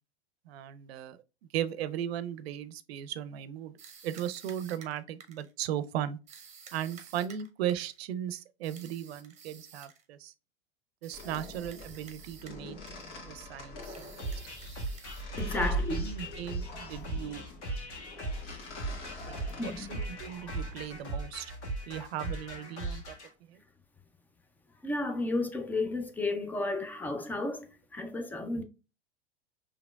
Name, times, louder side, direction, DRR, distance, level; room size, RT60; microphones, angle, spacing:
voice 1, 0.5-1.2 1.5-3.7 4.0-6.2 6.7-10.3 11.0-12.8 13.2-14.3 15.5-15.6 16.0-17.5 19.3-21.5 21.9-23.2 23.5-23.6, right 10 dB, 65° right, 0.6 m, -37 dB
sound 1, 3.8-5.5 6.3-8.0 8.6-10.0 11.0-12.6 12.9-13.2 13.8-15.7, right 7 dB, 20° right, 1.0 m, -52 dB
sound 2, 11.1-21.0, right 1 dB, 55° left, 1.8 m, -41 dB
sound 3, 14.2-23.3, right 2 dB, 85° left, 1.6 m, -38 dB
voice 2, 15.4-16.1 19.6-20.0 24.8-28.6, left 2 dB, 5° left, 0.5 m, -33 dB
4.9 x 3.1 x 2.3 m
hypercardioid pair, 105°, 33 cm